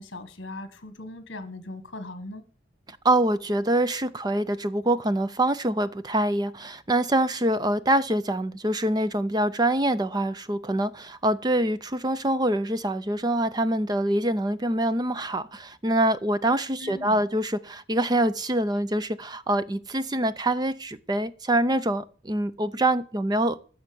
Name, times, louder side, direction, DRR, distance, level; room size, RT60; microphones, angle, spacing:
voice 1, 0.0-2.4 16.8-17.2, left 2 dB, 55° left, 1.4 m, -39 dB
voice 2, 2.9-23.6, right 1 dB, 20° right, 0.5 m, -25 dB
13.5 x 6.5 x 6.9 m
head